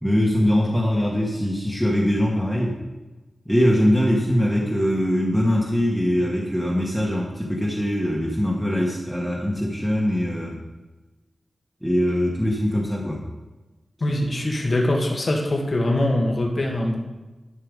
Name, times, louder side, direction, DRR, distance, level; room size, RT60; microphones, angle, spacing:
voice 1, 0.0-2.7 3.4-10.6 11.8-13.2, equal, 5° right, -4 dB, 1.5 m, -22 dB
voice 2, 14.0-17.0, left 1 dB, 45° left, 0 dB, 1.7 m, -23 dB
11.5 x 5.7 x 5.2 m, 1.1 s
wide cardioid pair, 90°, 0 cm